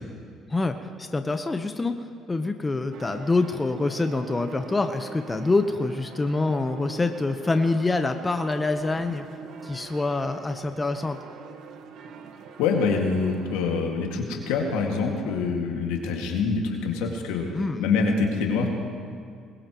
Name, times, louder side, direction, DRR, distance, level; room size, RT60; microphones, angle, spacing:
voice 1, 0.5-1.9 2.3-9.2 9.6-11.2 17.5-17.8, left 3 dB, 20° left, 7 dB, 0.9 m, -26 dB
sound 1, 2.9-13.8, right 6 dB, 70° right, 1.2 m, -44 dB
voice 2, 12.6-17.5 17.8-18.7, left 4 dB, 80° left, 1 dB, 2.0 m, -25 dB
20.5 x 20.0 x 3.1 m, 2.2 s
hypercardioid pair, 65°, 0 cm